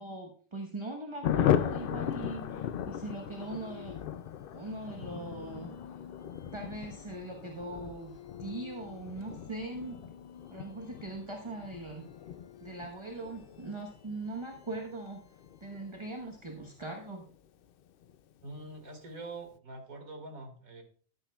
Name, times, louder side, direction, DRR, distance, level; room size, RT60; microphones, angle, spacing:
voice 1, 0.0-4.0 4.5-6.0 6.4-10.0 10.5-12.0 12.6-15.2 15.6-17.2, right 2 dB, 25° right, 2 dB, 1.1 m, -41 dB
sound 1, 1.1-16.2, left 5 dB, 35° left, 0.7 m, -53 dB
Thunder, 1.2-17.3 17.6-17.7 18.0-18.1 18.4-18.8, left 10 dB, 70° left, 0.5 m, -37 dB
voice 2, 18.4-20.8, right 2 dB, 85° right, 4 dB, 2.4 m, -44 dB
13.0 x 10.5 x 2.3 m, 0.42 s
omnidirectional pair, 1.4 m